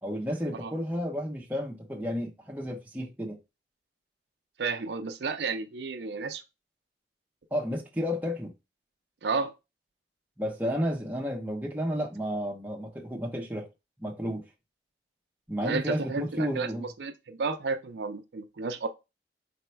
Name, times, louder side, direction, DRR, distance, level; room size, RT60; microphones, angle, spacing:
voice 1, 0.0-3.4 7.5-8.5 10.4-13.7 14.0-14.4 15.5-16.9, equal, 10° right, 0.7 m, -32 dB
voice 2, 4.6-6.4 9.2-9.5 15.6-18.9, right 4 dB, 75° right, 0.5 m, -32 dB
4.2 x 2.2 x 4.3 m
head